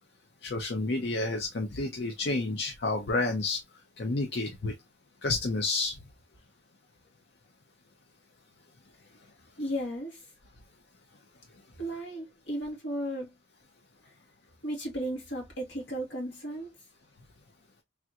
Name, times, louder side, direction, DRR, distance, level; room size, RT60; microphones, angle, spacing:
voice 1, 0.4-3.6 4.0-4.7 5.2-6.0, left 3 dB, 60° left, 0.6 m, -30 dB
voice 2, 9.6-10.2 11.8-13.3 14.6-16.7, equal, 75° left, 2.0 m, -35 dB
3.4 x 2.8 x 2.4 m
head